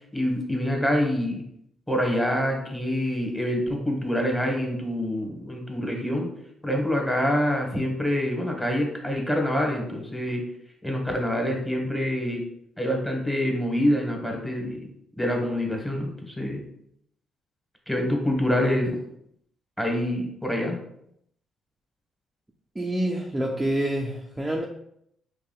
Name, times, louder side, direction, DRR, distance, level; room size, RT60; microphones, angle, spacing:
voice 1, 0.1-1.4 1.9-6.3 6.6-10.4 10.8-12.4 12.8-14.9 15.2-16.6 17.9-18.9 19.8-20.8, equal, 5° left, 1 dB, 1.1 m, -26 dB
voice 2, 22.8-24.7, right 1 dB, 10° right, 0 dB, 0.4 m, -27 dB
4.8 x 3.4 x 2.3 m, 0.74 s
cardioid pair, 90°, 0 cm